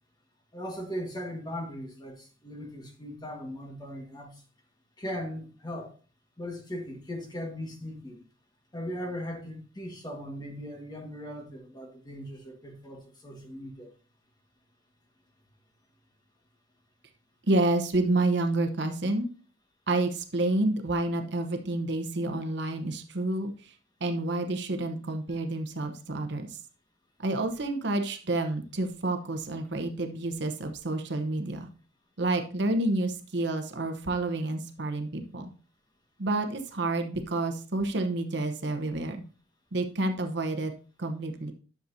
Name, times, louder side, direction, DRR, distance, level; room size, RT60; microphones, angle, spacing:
voice 1, 0.5-4.4 5.0-5.9 6.4-8.2 8.7-13.9, equal, 20° left, 1.5 m, -38 dB
voice 2, 17.5-19.3 19.9-23.7 24.0-26.6 27.2-31.7 32.2-35.5 36.2-39.2 39.7-40.7 41.0-41.5, right 2 dB, 60° right, 0.9 m, -29 dB
11.0 x 6.9 x 2.7 m
head